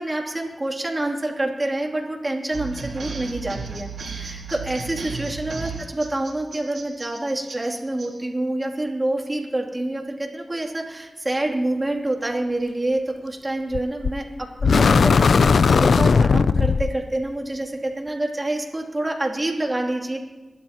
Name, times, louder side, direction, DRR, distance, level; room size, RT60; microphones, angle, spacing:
voice 1, 0.0-20.2, right 1 dB, 30° right, -1 dB, 2.9 m, -27 dB
sound 1, 2.5-8.1, right 5 dB, 90° right, 3.9 m, -34 dB
sound 2, 13.7-14.2 14.6-17.0, left 5 dB, 85° left, 0.3 m, -17 dB
27.0 x 12.0 x 3.0 m, 1.2 s
cardioid pair, 50°, 0 cm